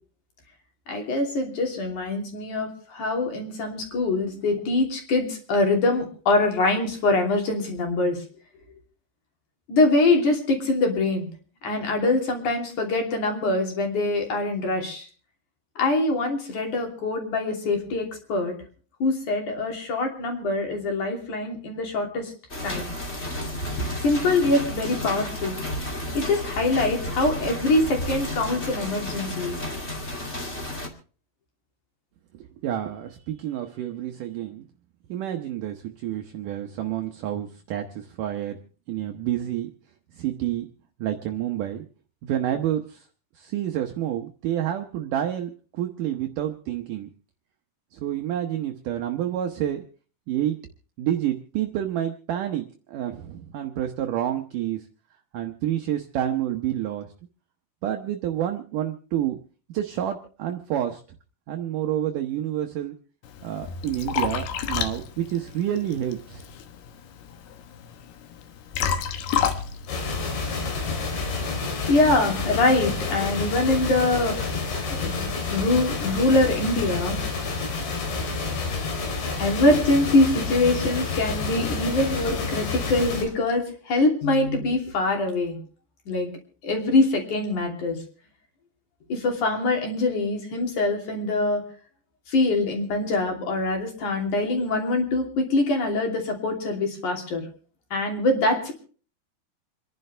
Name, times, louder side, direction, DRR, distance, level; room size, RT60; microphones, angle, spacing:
voice 1, 0.9-8.2 9.7-11.3 11.6-15.1 15.8-18.5 19.0-22.3 22.6-22.9 24.0-25.6 26.1-29.6 71.9-74.7 75.0-77.2 79.4-85.6 86.1-86.3 86.6-88.0 89.1-91.6 92.3-97.4 97.9-98.7, left 2 dB, 50° left, 3 dB, 4.1 m, -24 dB
sound 1, 22.5-30.9, left 1 dB, 20° left, 1.7 m, -32 dB
voice 2, 32.3-34.7 35.1-38.6 38.9-39.7 40.1-40.7 41.0-41.9 42.2-43.1 43.4-47.1 47.9-49.8 50.3-50.6 51.0-54.9 55.3-57.1 57.8-59.4 59.7-61.0 61.5-63.0 63.4-66.5, right 11 dB, 80° right, 5 dB, 1.9 m, -29 dB
Liquid, 63.2-71.0, left 7 dB, 70° left, 3.0 m, -31 dB
sound 2, 69.9-83.2, left 4 dB, 90° left, 5.8 m, -29 dB
28.0 x 11.0 x 3.3 m, 0.40 s
omnidirectional pair, 4.9 m